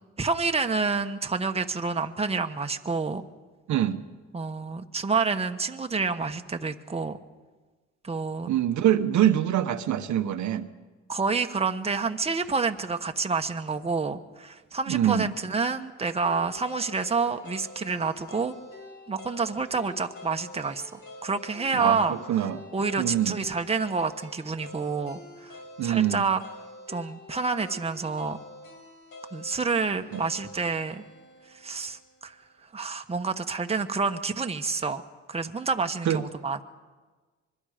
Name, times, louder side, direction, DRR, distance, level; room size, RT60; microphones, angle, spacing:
voice 1, 0.2-3.3 4.3-7.2 8.0-8.5 11.1-18.5 19.1-26.4 26.9-28.4 29.3-31.0 31.5-32.3 32.7-35.0 35.3-36.6, right 4 dB, 20° right, 6 dB, 1.2 m, -28 dB
voice 2, 3.7-4.0 8.5-10.7 14.9-15.3 21.7-22.6 23.0-23.4 25.8-26.2 30.1-30.2 36.0-36.2, right 11 dB, 75° right, 8 dB, 1.1 m, -24 dB
sound 1, 16.2-32.3, left 1 dB, 75° left, 7.0 m, -46 dB
25.0 x 22.5 x 5.1 m, 1.3 s
cardioid pair, 90°, 30 cm